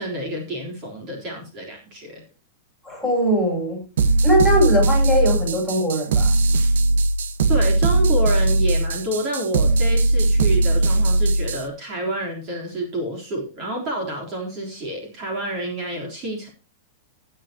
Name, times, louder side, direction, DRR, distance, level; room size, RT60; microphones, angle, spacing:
voice 1, 0.0-2.2 7.5-16.5, right 1 dB, 30° right, 0 dB, 3.7 m, -28 dB
voice 2, 2.8-3.8 4.2-6.3, equal, 10° right, -2 dB, 6.7 m, -20 dB
sound 1, 4.0-11.7, right 2 dB, 85° right, 1.3 m, -19 dB
18.5 x 8.0 x 2.9 m, 0.32 s
supercardioid pair, 170°, 0 cm